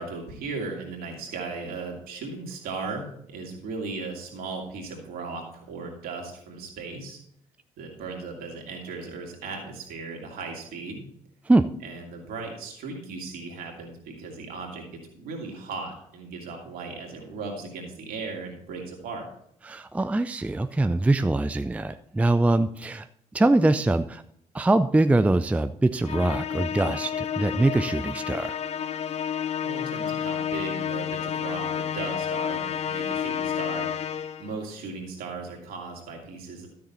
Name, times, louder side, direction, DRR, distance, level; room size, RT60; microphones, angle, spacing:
voice 1, 0.0-7.2 7.8-11.1 11.8-19.3 29.6-33.9 34.4-36.7, right 4 dB, 60° right, 1 dB, 2.7 m, -37 dB
voice 2, 19.7-23.1 23.3-24.2 24.5-28.6, right 2 dB, 10° right, 12 dB, 0.4 m, -23 dB
Musical instrument, 26.0-34.5, left 8 dB, 40° left, 0.6 m, -30 dB
12.5 x 6.9 x 4.2 m, 0.69 s
figure-of-eight pair, 45°, 17 cm